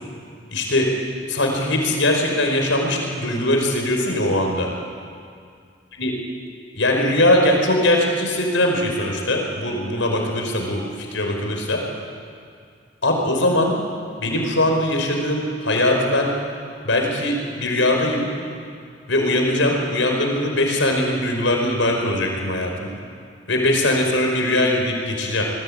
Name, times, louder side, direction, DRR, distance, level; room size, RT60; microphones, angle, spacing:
voice 1, 0.5-0.9 1.3-4.7 6.0-6.1 6.8-10.8 11.1-11.8 13.0-13.7 14.2-16.3 16.8-18.3 19.1-22.9 23.5-25.4, left 1 dB, 85° left, 1 dB, 5.4 m, -21 dB
27.5 x 21.0 x 9.0 m, 2.3 s
head